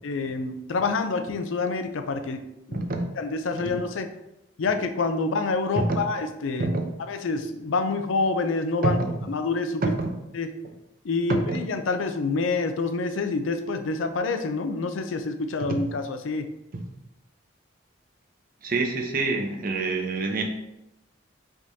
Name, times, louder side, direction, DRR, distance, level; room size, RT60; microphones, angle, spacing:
voice 1, 0.0-2.4 2.7-2.9 3.2-4.1 4.6-6.7 7.1-9.0 9.3-9.8 10.3-10.5 11.0-16.5, left 3 dB, 85° left, 7 dB, 0.5 m, -27 dB
voice 2, 18.6-20.4, right 3 dB, 45° right, 3 dB, 0.6 m, -26 dB
5.1 x 3.6 x 2.7 m, 0.90 s
head